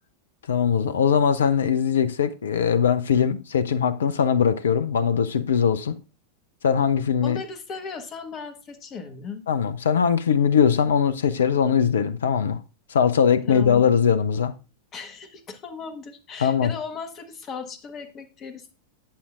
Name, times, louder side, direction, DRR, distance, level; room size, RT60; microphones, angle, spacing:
voice 1, 0.5-6.0 6.6-7.4 9.5-12.6 12.9-14.5 16.4-16.7, left 7 dB, 65° left, 0.5 m, -21 dB
voice 2, 7.2-9.4 13.5-13.9 14.9-18.7, left 5 dB, 30° left, 1.3 m, -37 dB
11.0 x 8.5 x 2.5 m
figure-of-eight pair, 90°, 0 cm